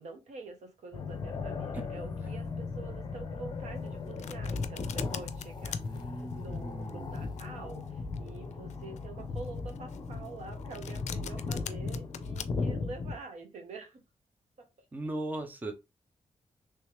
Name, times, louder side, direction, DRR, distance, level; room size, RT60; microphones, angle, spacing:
voice 1, 0.0-14.0, right 3 dB, 90° right, 1.1 m, -46 dB
sound 1, 0.9-13.2, left 4 dB, 40° left, 0.6 m, -37 dB
Domestic sounds home sounds, 3.8-12.4, left 10 dB, 90° left, 0.4 m, -43 dB
voice 2, 5.8-7.2 14.9-15.7, right 1 dB, 15° right, 0.5 m, -38 dB
3.3 x 3.1 x 3.1 m
wide cardioid pair, 175°, 11 cm